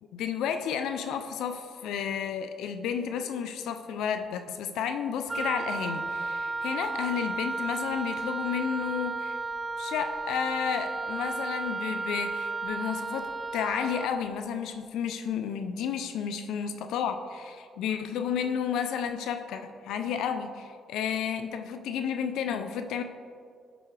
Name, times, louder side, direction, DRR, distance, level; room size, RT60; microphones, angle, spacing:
voice 1, 0.1-9.4 9.8-23.0, left 7 dB, 85° left, 8 dB, 0.4 m, -32 dB
Wind instrument woodwind instrument, 5.3-14.1, right 3 dB, 20° right, 0.3 m, -33 dB
11.0 x 6.1 x 3.3 m, 2.2 s
cardioid pair, 90°, 0 cm